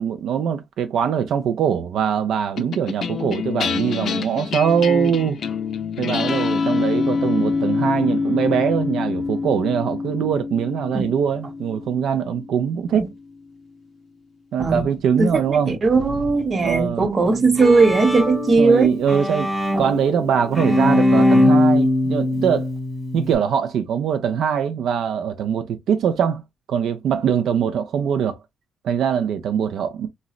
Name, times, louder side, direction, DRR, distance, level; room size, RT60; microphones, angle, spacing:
voice 1, 0.0-5.4 6.0-13.1 14.5-15.7 16.6-17.1 18.6-19.5 19.8-22.7 23.1-26.4 26.7-28.4 28.8-30.1, right 8 dB, 75° right, 0.4 m, -22 dB
sound 1, 2.6-13.2, left 4 dB, 55° left, 0.5 m, -25 dB
voice 2, 15.2-18.9 19.7-19.8, right 3 dB, 35° right, 0.8 m, -18 dB
Bowed string instrument, 17.3-23.3, left 1 dB, ahead, 0.9 m, -20 dB
3.8 x 2.0 x 2.3 m
cardioid pair, 120°, 0 cm